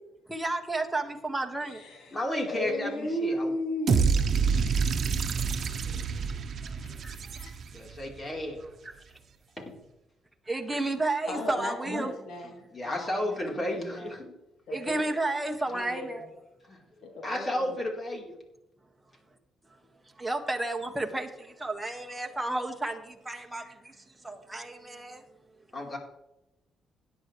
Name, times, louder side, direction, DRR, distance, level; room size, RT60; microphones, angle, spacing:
voice 1, 0.3-1.8 7.0-7.2 10.5-12.1 14.7-16.3 20.2-23.9 24.2-25.2, right 2 dB, 10° right, 3 dB, 1.9 m, -32 dB
voice 2, 1.6-2.2 2.5-4.7 5.1-5.3 5.6-6.0 6.6-7.5 11.3-14.1 14.7-15.1 15.7-16.2 17.0-17.8, left 1 dB, 80° left, 1 dB, 3.2 m, -36 dB
voice 3, 2.1-3.5 7.7-8.6 9.6-9.7 12.7-14.3 16.7-16.8 17.2-18.4 25.7-26.0, left 1 dB, 30° left, 0 dB, 4.2 m, -33 dB
sound 1, 3.9-8.0, right 5 dB, 55° right, 1.1 m, -27 dB
17.0 x 10.5 x 3.4 m, 0.90 s
cardioid pair, 90°, 0 cm